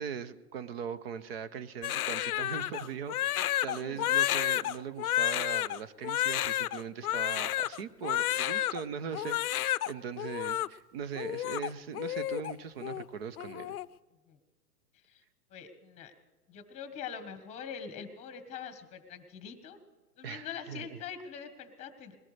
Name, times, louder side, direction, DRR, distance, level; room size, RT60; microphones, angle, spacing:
voice 1, 0.0-13.8 20.2-21.0, right 7 dB, 40° right, 15 dB, 0.8 m, -40 dB
Crying sobbing, 1.8-8.8 9.1-9.9 10.2-10.7 11.2-12.5 12.8-13.0 13.4-13.9, left 13 dB, 65° left, 0.6 m, -31 dB
voice 2, 3.7-4.1 14.3-14.4 15.1-15.2 15.5-16.1 16.5-19.8 20.2-22.2, left 7 dB, 15° left, 10 dB, 1.2 m, -43 dB
21.0 x 17.5 x 3.3 m, 1.3 s
hypercardioid pair, 150°, 46 cm